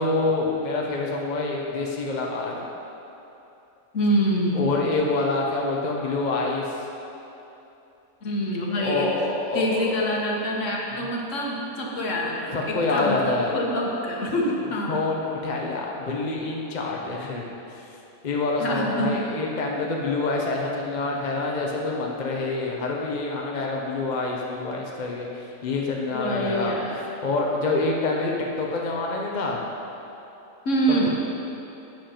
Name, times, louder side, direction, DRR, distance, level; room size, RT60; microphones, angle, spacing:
voice 1, 0.0-2.7 4.5-6.8 8.8-10.4 10.9-11.1 12.5-13.5 14.6-17.9 18.2-26.8 27.2-29.6 30.9-31.1, left 3 dB, 35° left, -1 dB, 0.9 m, -27 dB
voice 2, 3.9-4.6 8.2-9.1 9.5-12.6 12.9-15.0 18.6-19.1 26.1-27.0 30.6-31.1, equal, 60° left, -2 dB, 1.6 m, -25 dB
10.0 x 7.8 x 4.5 m, 2.9 s
omnidirectional pair, 1.5 m